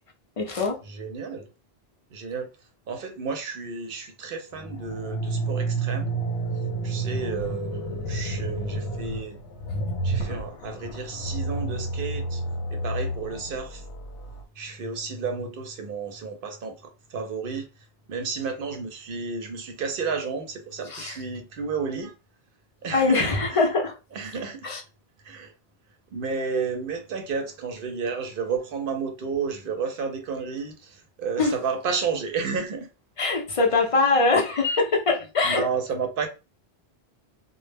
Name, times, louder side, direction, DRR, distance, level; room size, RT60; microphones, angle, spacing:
voice 1, 0.4-0.8 20.9-21.2 22.9-23.9 24.6-24.8 31.4-31.5 33.2-35.7, left 3 dB, 40° left, 0.5 m, -22 dB
voice 2, 0.9-1.4 2.1-2.5 2.9-6.1 6.8-9.4 10.0-12.4 12.7-13.8 14.6-17.7 18.1-22.1 22.8-23.2 23.5-23.7 24.1-24.6 25.2-25.5 26.1-32.9 35.5-36.3, right 5 dB, 65° right, 0.7 m, -31 dB
sound 1, 4.5-14.4, right 2 dB, 90° left, 0.9 m, -30 dB
2.1 x 2.0 x 3.3 m
omnidirectional pair, 1.1 m